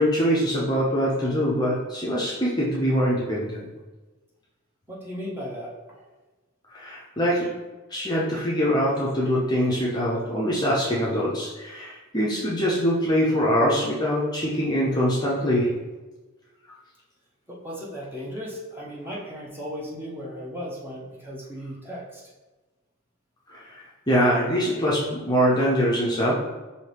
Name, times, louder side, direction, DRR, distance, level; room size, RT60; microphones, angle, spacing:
voice 1, 0.0-3.7 6.7-7.5 7.9-15.7 23.5-26.3, equal, 20° left, -6 dB, 0.7 m, -23 dB
voice 2, 4.9-6.0 17.5-22.2, equal, 10° right, -5 dB, 0.9 m, -36 dB
5.7 x 2.7 x 3.3 m, 1.2 s
head